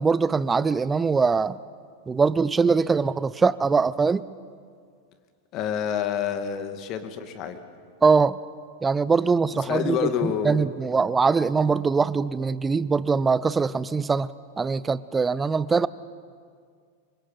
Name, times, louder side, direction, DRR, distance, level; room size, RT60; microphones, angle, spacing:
voice 1, 0.0-1.6 2.1-4.2 8.0-8.4 8.8-14.3 14.6-15.9, right 5 dB, 15° right, 18 dB, 0.6 m, -22 dB
voice 2, 5.5-7.6 9.5-10.7, left 8 dB, 35° left, 8 dB, 2.3 m, -28 dB
28.0 x 24.5 x 7.8 m, 2.1 s
figure-of-eight pair, 90°, 0 cm